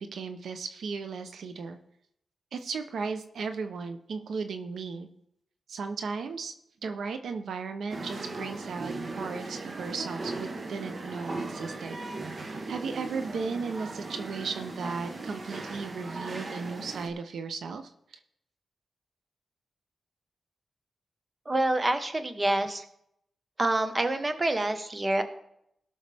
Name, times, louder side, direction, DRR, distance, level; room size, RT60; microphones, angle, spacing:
voice 1, 0.0-1.8 2.5-5.1 5.7-6.5 6.8-12.0 12.3-17.9, right 5 dB, 85° right, 8 dB, 0.7 m, -36 dB
sound 1, 7.9-17.1, right 3 dB, 50° right, 1.1 m, -38 dB
voice 2, 21.5-22.8 23.6-25.2, right 2 dB, 30° right, 8 dB, 1.2 m, -27 dB
18.0 x 6.3 x 3.5 m, 0.75 s
cardioid pair, 75°, 0 cm